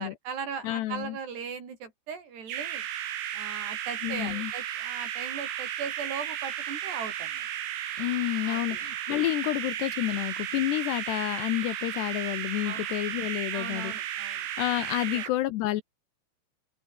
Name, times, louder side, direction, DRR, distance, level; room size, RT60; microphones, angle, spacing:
voice 1, 0.0-2.9 3.3-7.5 8.5-8.8 12.6-12.8 13.5-14.5 15.0-15.2, right 6 dB, 55° right, 7.0 m, -38 dB
voice 2, 0.6-1.2 4.0-4.5 8.0-13.9 14.6-15.8, left 15 dB, 75° left, 2.6 m, -29 dB
sound 1, 2.5-15.3, right 11 dB, 85° right, 5.1 m, -34 dB
open air
omnidirectional pair, 5.8 m